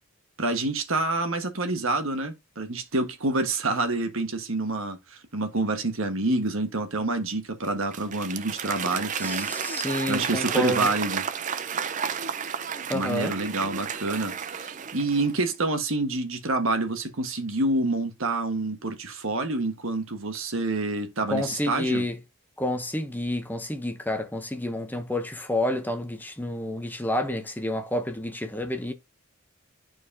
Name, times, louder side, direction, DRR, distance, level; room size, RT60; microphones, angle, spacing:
voice 1, 0.4-9.5 10.1-11.2 12.9-22.1, right 2 dB, 60° right, 1.4 m, -27 dB
Applause / Crowd, 7.6-15.4, right 7 dB, 35° right, 0.5 m, -32 dB
voice 2, 9.2-10.9 12.9-13.4 21.3-22.2 22.6-28.9, left 1 dB, 10° left, 0.8 m, -29 dB
11.0 x 4.7 x 2.7 m
head